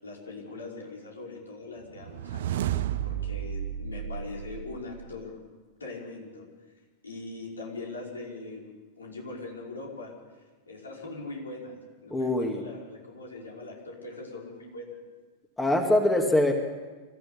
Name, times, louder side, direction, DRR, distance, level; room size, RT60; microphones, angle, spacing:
voice 1, 0.0-2.7 3.0-5.3 5.8-6.4 7.0-10.1 10.7-15.0, left 2 dB, 75° left, -2 dB, 5.8 m, -41 dB
sound 1, 2.0-5.2, right 10 dB, 55° right, 0.8 m, -32 dB
voice 2, 12.1-12.6 15.6-16.5, left 1 dB, 10° left, 4 dB, 2.3 m, -23 dB
25.5 x 15.0 x 8.6 m, 1.3 s
figure-of-eight pair, 90°, 0 cm